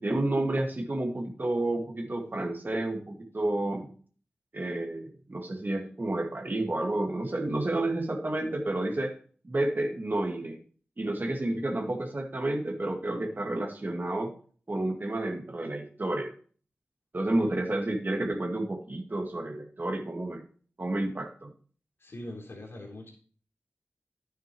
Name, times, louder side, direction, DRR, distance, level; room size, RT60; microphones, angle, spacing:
voice 1, 0.0-3.9 4.5-9.1 9.4-10.6 11.0-14.3 14.7-16.3 17.1-20.4 20.8-21.5, right 1 dB, 45° right, 3 dB, 2.1 m, -30 dB
voice 2, 22.0-23.1, left 1 dB, 70° left, -1 dB, 3.5 m, -42 dB
10.0 x 9.2 x 3.1 m, 0.42 s
cardioid pair, 40°, 4 cm